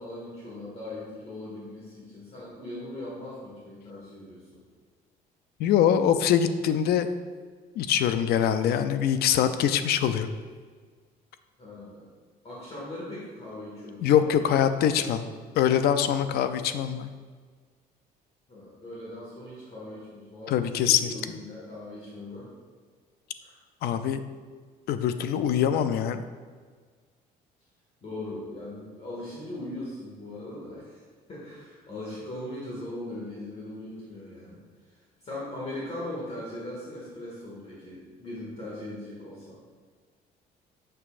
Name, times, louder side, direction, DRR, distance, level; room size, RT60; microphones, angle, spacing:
voice 1, 0.0-4.6 11.6-12.0 12.4-14.5 15.0-15.4 18.5-22.5 23.4-23.6 28.0-31.0 31.3-34.6 34.9-39.6, left 1 dB, 35° left, -6 dB, 1.9 m, -39 dB
voice 2, 5.6-7.1 7.8-10.3 14.0-15.2 15.6-17.1 20.5-21.1 23.8-24.2 24.9-26.2, left 9 dB, 70° left, 11 dB, 0.4 m, -23 dB
6.9 x 6.7 x 2.5 m, 1.6 s
cardioid pair, 110°, 17 cm